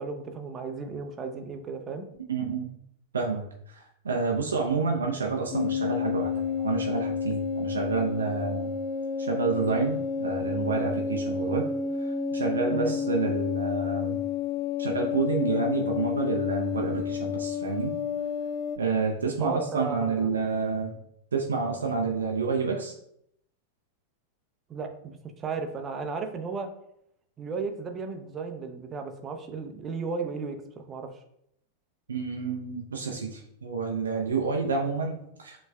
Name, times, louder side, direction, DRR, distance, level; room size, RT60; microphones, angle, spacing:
voice 1, 0.0-2.0 12.7-12.9 19.4-20.3 24.7-26.7 27.4-31.1, right 5 dB, 25° right, 5 dB, 0.6 m, -34 dB
voice 2, 2.3-2.7 3.1-8.7 9.2-11.7 12.0-14.2 14.8-17.9 18.8-21.0 21.3-22.9 32.1-35.6, right 4 dB, 70° right, 1 dB, 0.6 m, -29 dB
sound 1, 5.5-18.8, left 6 dB, 40° left, 0.4 m, -30 dB
7.1 x 3.2 x 2.3 m, 0.73 s
figure-of-eight pair, 90°, 0 cm